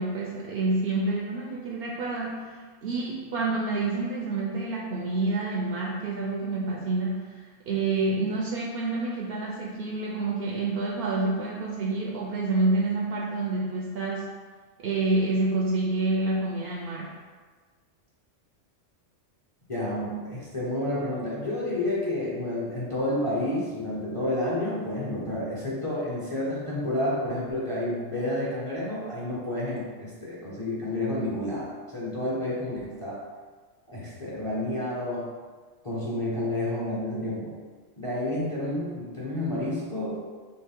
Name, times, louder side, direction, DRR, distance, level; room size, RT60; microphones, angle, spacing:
voice 1, 0.0-14.3 14.8-17.1, right 2 dB, 60° right, -2 dB, 0.7 m, -28 dB
voice 2, 19.7-33.2 33.9-35.3 35.8-37.5 38.0-40.2, left 1 dB, 30° left, -7 dB, 0.8 m, -30 dB
4.3 x 3.0 x 3.6 m, 1.4 s
omnidirectional pair, 1.3 m